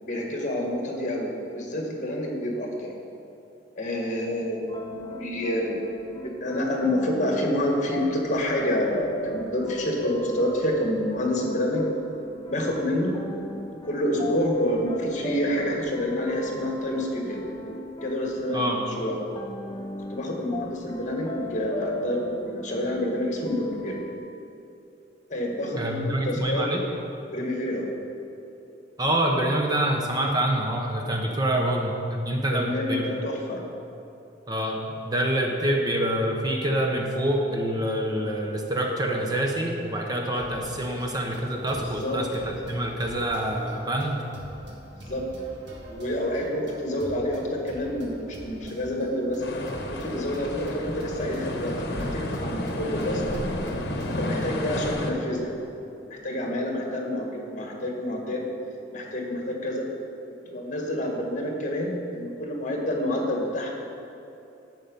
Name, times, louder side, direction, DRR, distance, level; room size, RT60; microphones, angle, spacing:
voice 1, 0.0-2.9 3.8-4.6 4.9-5.8 6.2-11.8 12.5-13.2 13.9-17.4 18.0-19.1 20.1-24.0 25.3-26.6 27.3-27.9 32.5-33.6 41.8-42.2 45.0-45.2 45.9-49.4 49.9-53.2 54.2-55.6 56.1-58.4 58.9-59.8 60.5-63.7, left 1 dB, 40° left, 0 dB, 1.7 m, -28 dB
sound 1, 4.7-24.2, left 1 dB, 25° left, 0.6 m, -38 dB
voice 2, 18.5-18.8 25.7-26.8 29.0-33.1 34.5-44.3, right 1 dB, 20° right, 1 dB, 0.8 m, -26 dB
sound 2, 40.4-54.5, equal, 70° right, 1.6 m, -44 dB
sound 3, 49.4-55.1, left 1 dB, 60° left, 1.1 m, -31 dB
11.0 x 8.1 x 5.4 m, 2.8 s
head